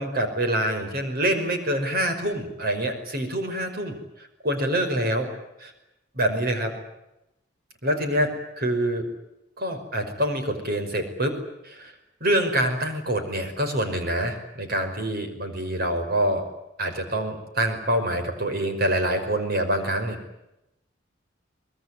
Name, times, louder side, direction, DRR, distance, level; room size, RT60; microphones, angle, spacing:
voice 1, 0.0-4.0 4.4-5.3 5.6-5.7 6.1-6.8 7.8-9.1 9.6-11.4 11.6-11.9 12.2-16.4 16.8-20.2, right 1 dB, 50° right, 7 dB, 5.5 m, -26 dB
24.5 x 21.5 x 9.9 m, 0.89 s
head